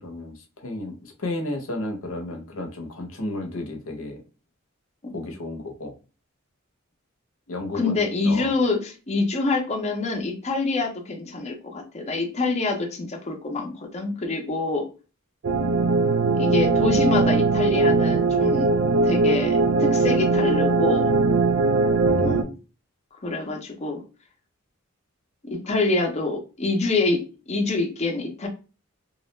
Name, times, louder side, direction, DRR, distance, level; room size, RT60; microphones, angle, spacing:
voice 1, 0.0-4.2 5.1-5.9 7.5-8.5 22.2-22.4, left 2 dB, 75° left, 4 dB, 0.7 m, -33 dB
voice 2, 7.7-14.9 16.1-18.7 19.0-21.2 22.1-22.5 23.2-24.0 25.4-28.5, left 3 dB, 30° left, 2 dB, 0.5 m, -26 dB
sound 1, 15.4-22.4, right 3 dB, 65° right, 0.4 m, -20 dB
2.3 x 2.1 x 3.0 m, 0.33 s
head